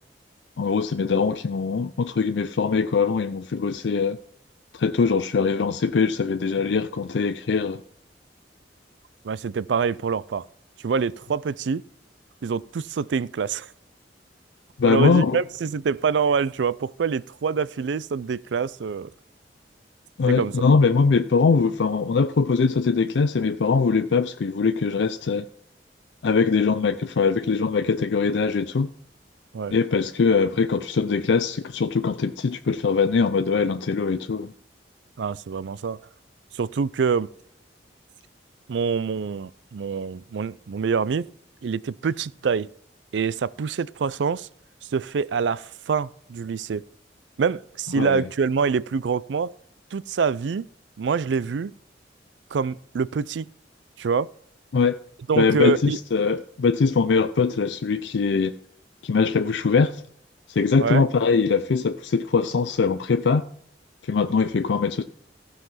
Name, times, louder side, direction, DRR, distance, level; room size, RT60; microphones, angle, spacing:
voice 1, 0.6-4.2 4.7-7.8 14.8-15.4 20.2-25.5 26.2-28.9 29.7-34.5 48.0-48.2 54.7-55.0 55.3-58.5 59.0-60.0 60.5-63.4 64.1-65.0, left 5 dB, 80° left, 0.4 m, -22 dB
voice 2, 9.2-10.5 10.8-11.8 12.4-13.7 14.8-19.1 20.3-20.5 29.5-29.7 35.2-36.0 36.5-37.3 38.7-41.3 41.6-42.7 43.1-44.5 44.8-46.8 47.4-49.5 49.9-50.7 51.0-51.7 52.5-53.5 54.0-54.3 55.3-56.0 60.8-61.0, right 5 dB, 85° right, 0.4 m, -25 dB
15.0 x 5.6 x 5.7 m
head